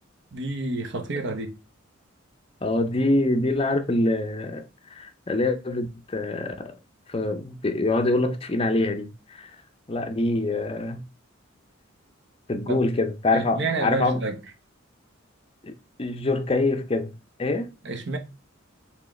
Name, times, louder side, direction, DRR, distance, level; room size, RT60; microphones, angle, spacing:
voice 1, 0.3-1.6 12.7-12.8 13.3-14.4 17.8-18.2, right 3 dB, 60° right, 1.0 m, -29 dB
voice 2, 2.6-4.6 4.9-6.8 7.1-9.5 9.9-11.0 12.5-14.2 15.6-15.7 16.0-17.1 17.4-17.7, left 2 dB, 30° left, 0.5 m, -25 dB
4.6 x 3.5 x 3.1 m
head